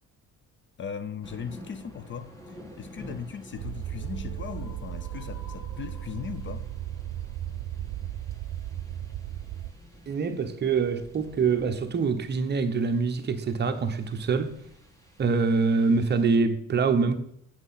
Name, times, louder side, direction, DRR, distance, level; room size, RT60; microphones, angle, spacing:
voice 1, 0.8-6.7, left 7 dB, 35° left, 0.6 m, -38 dB
sound 1, 1.2-16.4, equal, 10° left, 1.7 m, -50 dB
sound 2, 3.3-9.3, left 2 dB, 60° left, 2.8 m, -53 dB
sound 3, 3.6-9.7, right 12 dB, 60° right, 0.5 m, -36 dB
voice 2, 10.1-14.6 15.2-17.2, right 4 dB, 35° right, 0.9 m, -25 dB
8.3 x 6.2 x 5.7 m
cardioid pair, 140°, 32 cm